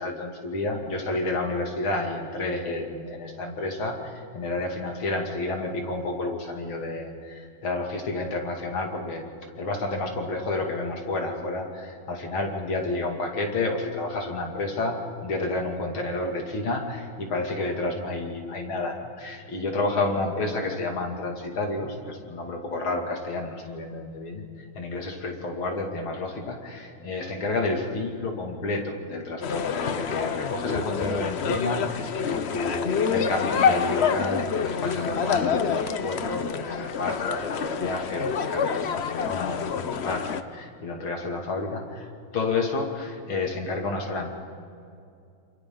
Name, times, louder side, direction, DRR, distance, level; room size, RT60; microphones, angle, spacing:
voice 1, 0.0-9.2 9.6-24.4 24.7-42.1 42.3-44.4, left 2 dB, 90° left, 1 dB, 3.4 m, -30 dB
sound 1, 29.4-40.4, left 6 dB, 65° left, 0.6 m, -27 dB
28.0 x 27.5 x 3.9 m, 2.4 s
omnidirectional pair, 2.2 m